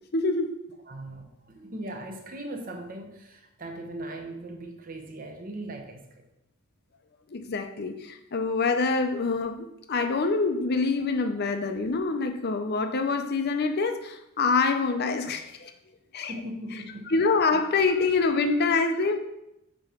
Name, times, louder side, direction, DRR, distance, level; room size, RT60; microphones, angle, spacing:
voice 1, 0.1-0.5 7.3-15.7 16.1-16.3 17.1-19.2, left 4 dB, 50° left, 7 dB, 0.6 m, -25 dB
voice 2, 0.9-6.3 10.2-10.3 11.0-11.1 16.3-17.2, right 1 dB, 40° right, 3 dB, 0.8 m, -39 dB
7.4 x 3.1 x 4.9 m, 0.86 s
head